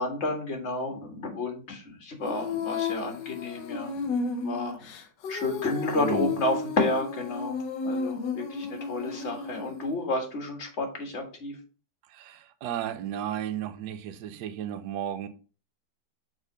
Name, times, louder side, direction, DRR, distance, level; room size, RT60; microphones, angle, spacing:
voice 1, 0.0-4.1 4.4-4.8 5.3-7.6 7.8-11.6, left 2 dB, 40° left, 2.0 m, -31 dB
Female singing, 2.3-9.9, left 4 dB, 80° left, 1.6 m, -33 dB
voice 2, 5.9-6.3 12.1-15.3, right 10 dB, 70° right, 1.2 m, -34 dB
6.2 x 4.3 x 4.9 m
omnidirectional pair, 1.9 m